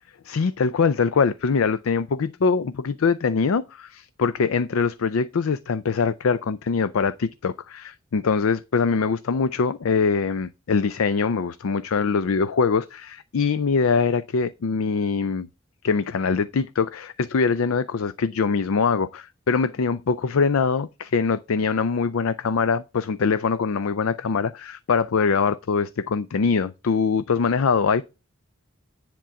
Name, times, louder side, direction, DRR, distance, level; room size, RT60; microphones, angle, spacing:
voice 1, 0.2-15.5 15.8-28.0, left 5 dB, 70° left, 0.4 m, -23 dB
10.5 x 3.6 x 6.9 m
head